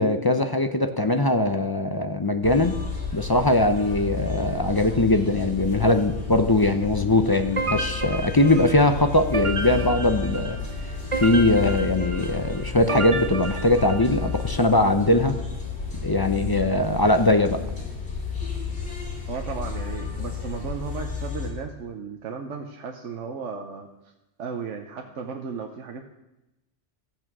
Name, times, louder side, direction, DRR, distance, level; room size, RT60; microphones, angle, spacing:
voice 1, 0.0-2.8 3.1-10.6 11.1-15.3 16.0-17.6, left 2 dB, 25° left, 7 dB, 0.6 m, -21 dB
sound 1, 2.4-21.5, left 5 dB, 50° left, 3.2 m, -32 dB
sound 2, 7.6-14.5, right 3 dB, 30° right, 0.8 m, -32 dB
voice 2, 19.3-23.9 24.4-26.0, right 5 dB, 80° right, 4 dB, 1.2 m, -35 dB
14.0 x 8.9 x 6.1 m, 0.96 s
omnidirectional pair, 1.2 m